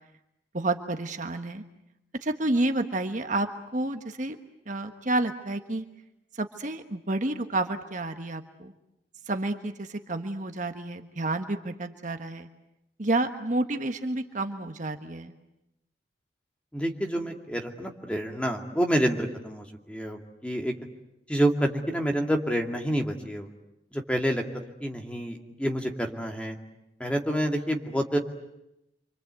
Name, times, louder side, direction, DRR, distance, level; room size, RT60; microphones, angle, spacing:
voice 1, 0.5-1.6 2.2-4.4 4.6-5.8 6.3-8.7 9.3-12.5 13.0-15.3, right 2 dB, 45° right, 6 dB, 1.4 m, -30 dB
voice 2, 16.7-20.7 21.3-23.5 23.9-24.4 24.8-26.6 27.0-28.2, equal, 5° left, 2 dB, 2.3 m, -28 dB
28.5 x 24.5 x 8.2 m, 0.88 s
head